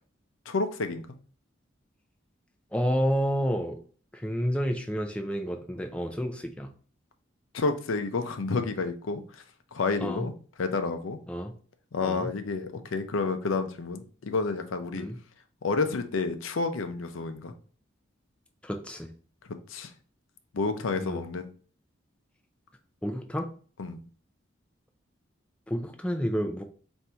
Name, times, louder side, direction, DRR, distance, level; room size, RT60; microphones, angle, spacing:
voice 1, 0.5-1.1 7.5-9.4 9.7-10.3 10.6-11.2 11.9-15.1 15.6-17.5 19.7-19.9 20.5-21.5 23.8-24.0, left 4 dB, 85° left, 8 dB, 0.6 m, -30 dB
voice 2, 2.7-3.8 4.1-6.7 10.0-10.3 11.3-11.5 12.0-12.3 14.9-15.2 18.6-19.1 21.0-21.3 23.0-23.5 25.7-26.6, equal, 5° left, 4 dB, 0.3 m, -30 dB
4.3 x 2.7 x 3.4 m, 0.42 s
head